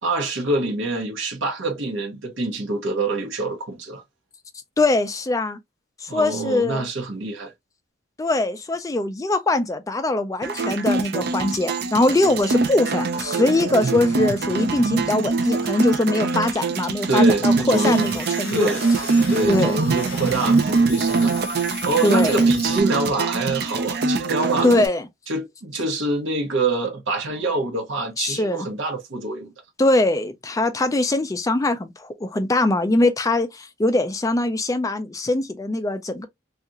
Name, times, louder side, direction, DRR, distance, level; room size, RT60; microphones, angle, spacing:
voice 1, 0.0-4.0 6.1-7.5 17.1-18.2 18.5-18.8 19.3-21.4 21.8-24.7 25.3-29.5, right 2 dB, 70° right, 0.9 m, -25 dB
voice 2, 4.8-5.6 6.0-6.8 8.2-18.7 19.5-19.8 22.0-22.4 24.6-25.1 28.2-28.7 29.8-36.3, left 2 dB, 15° left, 0.3 m, -22 dB
sound 1, 10.4-24.9, right 3 dB, 50° right, 0.4 m, -23 dB
sound 2, 17.7-22.8, left 9 dB, 85° left, 0.5 m, -38 dB
2.8 x 2.4 x 2.4 m
head